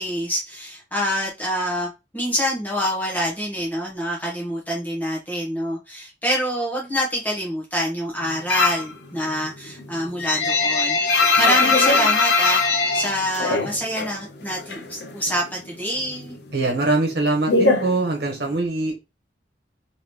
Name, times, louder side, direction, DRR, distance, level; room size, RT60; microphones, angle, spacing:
voice 1, 0.0-16.4, equal, 10° left, -3 dB, 1.1 m, -26 dB
sound 1, 8.5-8.9 9.3-14.2 14.4-15.5 15.8-18.6, left 3 dB, 65° left, 0.6 m, -20 dB
voice 2, 16.5-18.9, right 2 dB, 60° right, 0 dB, 1.3 m, -22 dB
3.9 x 2.9 x 3.1 m, 0.26 s
head